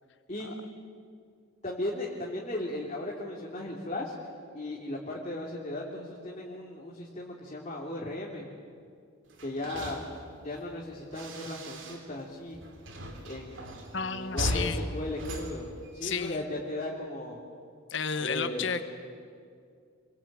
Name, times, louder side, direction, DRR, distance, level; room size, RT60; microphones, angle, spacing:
voice 1, 1.6-4.1 4.5-8.5 9.4-10.1 10.4-12.6 13.3-17.4 18.2-18.6, left 1 dB, 35° left, -3 dB, 3.1 m, -36 dB
sound 1, 9.3-12.2 12.5-16.4, right 1 dB, 70° right, 3.5 m, -38 dB
voice 2, 13.9-14.8 16.0-16.4 17.9-18.8, left 6 dB, 65° left, 10 dB, 1.4 m, -32 dB
27.5 x 23.0 x 8.9 m, 2.3 s
head